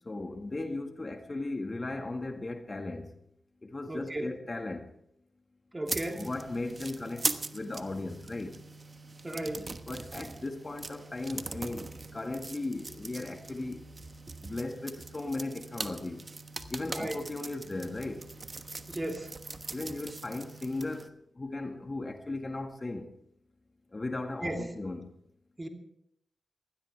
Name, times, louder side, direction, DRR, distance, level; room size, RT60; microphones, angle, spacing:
voice 1, 0.1-3.1 3.6-4.9 6.1-8.6 9.5-13.8 14.4-16.2 16.7-18.3 19.7-23.1 23.9-25.1, left 2 dB, 35° left, 5 dB, 1.9 m, -37 dB
voice 2, 3.9-4.3 5.7-6.3 9.2-9.7 16.9-17.2 18.9-19.3 24.4-24.6 25.6-25.7, right 1 dB, 25° right, 3 dB, 2.9 m, -35 dB
sound 1, 5.9-21.1, right 3 dB, 40° right, 1.2 m, -41 dB
21.0 x 16.0 x 3.5 m, 0.76 s
cardioid pair, 45°, 0 cm